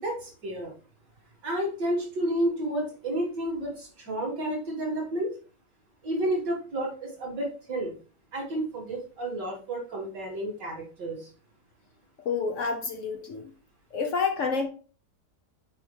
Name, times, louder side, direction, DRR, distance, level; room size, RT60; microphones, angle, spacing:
voice 1, 0.0-0.7 1.4-5.4 6.0-7.9 8.3-11.3, right 1 dB, 85° right, 2.8 m, -31 dB
voice 2, 12.2-13.5 13.9-14.7, left 5 dB, 55° left, 1.0 m, -28 dB
6.9 x 4.8 x 3.3 m
omnidirectional pair, 1.8 m